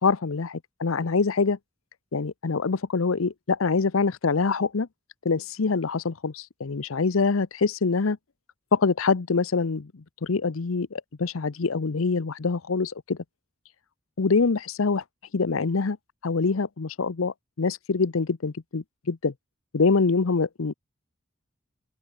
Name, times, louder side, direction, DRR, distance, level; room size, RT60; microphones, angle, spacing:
voice 1, 0.0-1.6 2.1-4.9 5.2-8.2 8.7-13.2 14.2-15.0 15.3-16.0 16.2-19.3 19.7-20.7, left 4 dB, 90° left, 0.7 m, -25 dB
open air
head